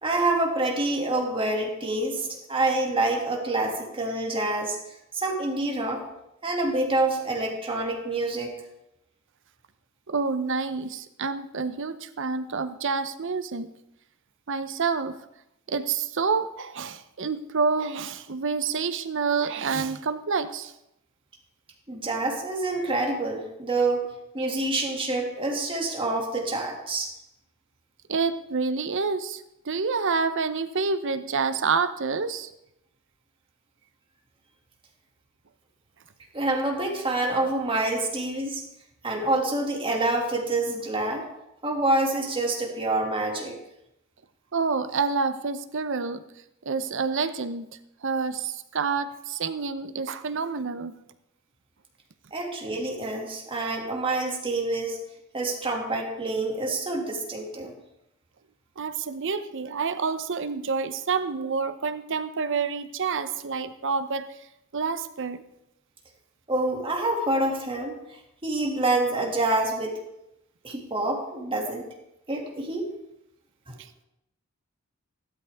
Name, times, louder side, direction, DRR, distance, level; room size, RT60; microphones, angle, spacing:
voice 1, 0.0-4.8 5.1-6.0 6.4-8.5 21.9-24.0 24.3-27.1 36.3-38.6 39.0-41.3 41.6-43.6 52.3-55.0 55.3-57.7 66.5-70.0 70.6-71.8 72.3-72.9 73.7-73.8, right 2 dB, 25° right, 0 dB, 2.3 m, -27 dB
voice 2, 10.1-13.7 14.5-15.1 15.7-20.7 28.1-32.5 44.5-46.2 46.6-50.9 58.8-64.3 64.7-65.4, right 5 dB, 60° right, 12 dB, 0.8 m, -28 dB
15.0 x 12.0 x 3.6 m, 0.85 s
head